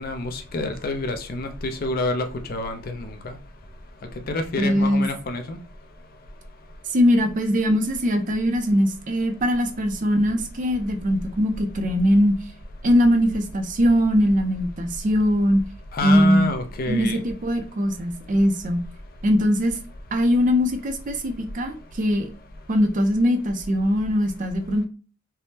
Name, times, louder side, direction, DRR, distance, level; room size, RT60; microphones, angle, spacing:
voice 1, 0.0-3.3 4.3-5.6 15.9-17.2, left 2 dB, 45° left, 0.4 m, -28 dB
voice 2, 4.6-5.1 6.9-12.4 12.8-15.6 16.0-18.8 19.2-19.8 20.1-22.3 22.7-24.9, equal, 40° right, 0.4 m, -21 dB
3.4 x 2.0 x 2.7 m
head